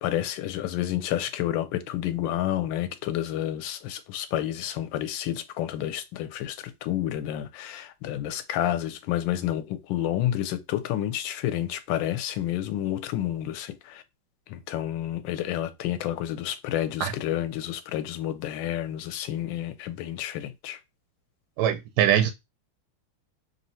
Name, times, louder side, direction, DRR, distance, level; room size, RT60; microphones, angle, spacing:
voice 1, 0.0-14.0 14.5-20.8, left 12 dB, 75° left, 1.3 m, -30 dB
voice 2, 21.6-22.3, right 10 dB, 75° right, 1.0 m, -22 dB
3.3 x 2.7 x 4.1 m
omnidirectional pair, 2.2 m